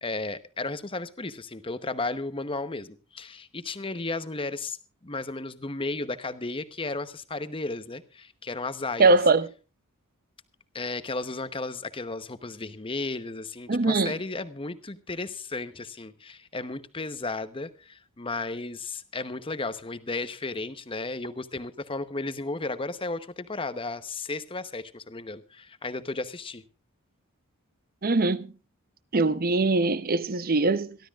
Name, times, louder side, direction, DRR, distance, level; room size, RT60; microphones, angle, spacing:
voice 1, 0.0-4.8 5.0-9.1 10.7-26.6, left 3 dB, 25° left, 0.9 m, -34 dB
voice 2, 9.0-9.5 13.7-14.1 28.0-28.5 29.1-31.0, right 3 dB, 40° right, 0.8 m, -22 dB
26.5 x 12.5 x 2.4 m
head